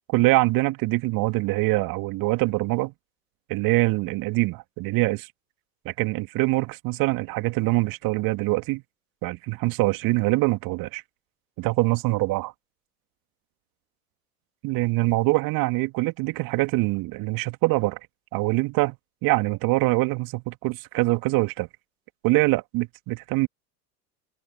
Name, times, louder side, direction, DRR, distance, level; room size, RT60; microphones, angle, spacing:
voice 1, 0.1-2.9 3.5-5.3 5.9-8.8 9.2-11.0 11.6-12.5 14.6-18.0 18.3-19.0 19.2-21.7 22.2-23.5, right 21 dB, 45° right, 2.2 m, -24 dB
open air
figure-of-eight pair, 80°, 46 cm